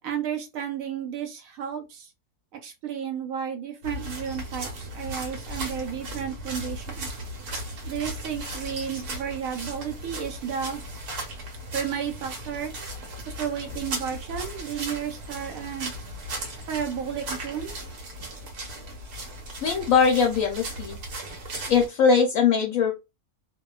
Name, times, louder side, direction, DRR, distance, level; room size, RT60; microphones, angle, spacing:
voice 1, 0.0-2.1 2.6-7.1 7.8-10.8 11.7-12.7 13.4-15.9 16.7-17.9, right 8 dB, 70° right, 0.9 m, -32 dB
sound 1, 3.8-21.9, right 1 dB, 90° right, 1.3 m, -36 dB
voice 2, 19.6-21.0 21.7-22.9, left 6 dB, 70° left, 0.9 m, -21 dB
2.7 x 2.2 x 2.3 m
omnidirectional pair, 1.6 m